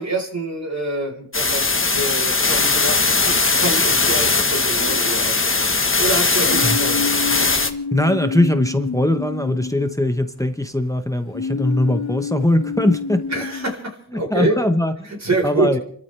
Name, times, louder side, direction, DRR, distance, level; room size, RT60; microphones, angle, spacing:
voice 1, 0.0-7.2 13.3-14.6 15.0-15.7, right 2 dB, 45° right, 2 dB, 4.4 m, -26 dB
sound 1, 1.3-7.7, left 3 dB, 35° left, 1.3 m, -19 dB
sound 2, 4.8-5.8 6.4-10.4 11.3-13.7, left 5 dB, 75° left, 1.9 m, -29 dB
voice 2, 7.9-13.2 14.1-15.2 15.4-15.8, left 1 dB, 10° left, 7 dB, 1.1 m, -20 dB
29.5 x 13.5 x 3.4 m, 0.63 s
wide cardioid pair, 65°, 38 cm